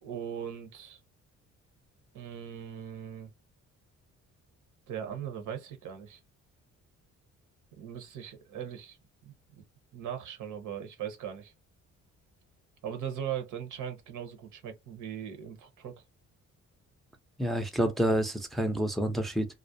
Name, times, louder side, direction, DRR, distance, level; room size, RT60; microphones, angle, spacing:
voice 1, 0.0-1.0 2.1-3.3 4.9-6.2 7.8-9.0 9.2-9.6 9.9-11.5 12.8-16.0, right 9 dB, 80° right, 0.8 m, -39 dB
voice 2, 17.4-19.5, equal, ahead, 0.5 m, -28 dB
2.4 x 2.0 x 2.6 m
cardioid pair, 90°, 30 cm